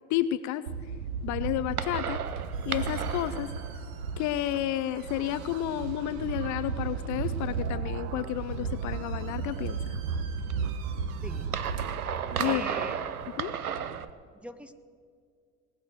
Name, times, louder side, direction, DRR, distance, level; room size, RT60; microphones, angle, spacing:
voice 1, 0.1-0.9 1.2-2.2 2.6-3.5 4.2-10.0 12.4-12.7 13.4-13.5, left 13 dB, 45° left, 14 dB, 0.5 m, -31 dB
sound 1, 0.7-14.1, right 6 dB, 90° right, 0.6 m, -33 dB
sound 2, 2.0-13.5, right 6 dB, 60° right, 1.5 m, -53 dB
sound 3, 2.8-14.1, right 13 dB, 35° right, 0.4 m, -46 dB
voice 2, 12.4-13.0 14.4-14.7, equal, 5° right, 8 dB, 0.7 m, -41 dB
19.0 x 6.7 x 7.7 m, 2.1 s
figure-of-eight pair, 65°, 43 cm